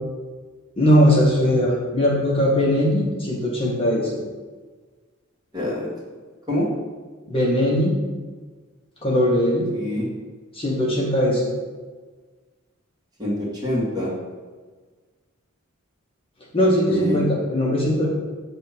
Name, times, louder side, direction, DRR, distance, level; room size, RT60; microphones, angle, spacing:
voice 1, 0.8-4.1 7.3-7.9 9.0-9.7 10.5-11.5 16.5-18.1, equal, 25° left, -4 dB, 1.0 m, -19 dB
voice 2, 5.5-5.9 6.5-6.7 9.7-10.1 13.2-14.1 16.9-17.3, equal, 20° right, -6 dB, 1.9 m, -25 dB
7.3 x 3.4 x 5.9 m, 1.4 s
head